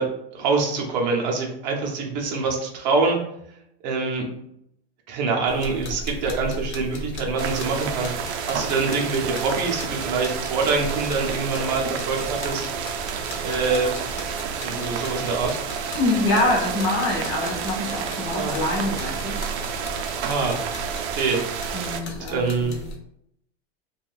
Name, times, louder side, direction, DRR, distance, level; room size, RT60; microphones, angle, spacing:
voice 1, 0.0-3.2 3.8-4.3 5.1-12.6 13.4-14.0 14.6-15.6 18.3-18.6 20.2-20.6 21.1-21.4 22.0-22.8, right 4 dB, 40° right, 1 dB, 0.6 m, -25 dB
sound 1, 5.5-22.9, equal, 85° left, 0.9 m, -37 dB
sound 2, 7.4-22.0, right 7 dB, 90° right, 0.5 m, -30 dB
voice 2, 15.9-19.4 21.7-22.8, left 2 dB, 20° left, -1 dB, 0.5 m, -25 dB
2.5 x 2.3 x 3.3 m, 0.76 s
supercardioid pair, 180°, 33 cm